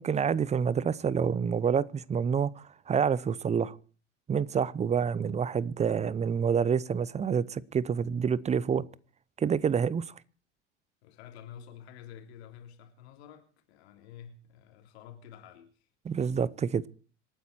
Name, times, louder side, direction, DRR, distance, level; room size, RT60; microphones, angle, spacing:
voice 1, 0.0-3.7 4.3-8.8 9.4-10.0 16.0-16.8, right 7 dB, 20° right, 0.7 m, -28 dB
voice 2, 11.0-15.7, left 9 dB, 65° left, 3.2 m, -49 dB
26.5 x 9.4 x 4.4 m
figure-of-eight pair, 75°, 35 cm